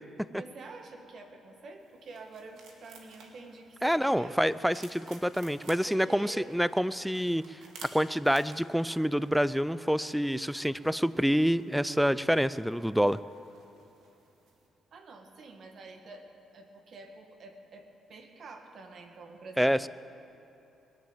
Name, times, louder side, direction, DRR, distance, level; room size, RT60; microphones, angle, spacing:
voice 1, 0.3-4.4 5.8-6.6 14.9-19.9, right 3 dB, 55° right, 5 dB, 1.7 m, -48 dB
sound 1, 1.8-14.7, right 4 dB, 75° right, 2.1 m, -55 dB
voice 2, 3.8-13.2 19.6-19.9, equal, ahead, 17 dB, 0.4 m, -27 dB
20.5 x 7.3 x 8.9 m, 2.9 s
cardioid pair, 90°, 0 cm